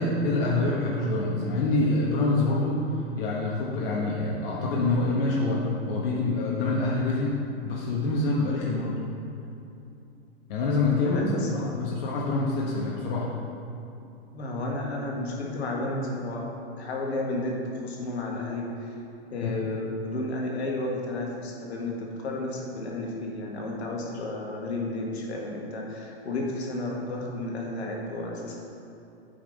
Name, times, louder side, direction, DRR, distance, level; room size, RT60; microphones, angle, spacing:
voice 1, 0.0-2.8 3.2-8.9 10.5-11.2 11.5-13.3 19.4-19.5, left 2 dB, 60° left, -4 dB, 1.3 m, -26 dB
voice 2, 11.0-11.6 14.3-16.5 16.8-19.0 19.3-28.6, left 2 dB, 80° left, -1 dB, 1.7 m, -32 dB
8.6 x 5.4 x 4.1 m, 2.8 s
hypercardioid pair, 120°, 32 cm